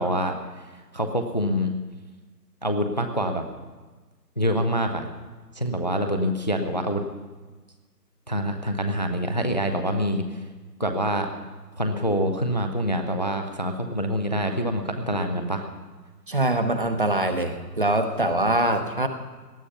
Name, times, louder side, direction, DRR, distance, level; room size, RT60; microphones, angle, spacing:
voice 1, 0.0-1.7 2.6-3.4 4.4-5.1 5.5-7.0 8.3-10.4 10.8-11.3 11.8-15.6, equal, 25° left, 6 dB, 0.7 m, -26 dB
voice 2, 16.3-19.1, right 1 dB, 30° right, 8 dB, 0.9 m, -23 dB
18.5 x 12.0 x 5.7 m, 1.3 s
figure-of-eight pair, 150°, 50 cm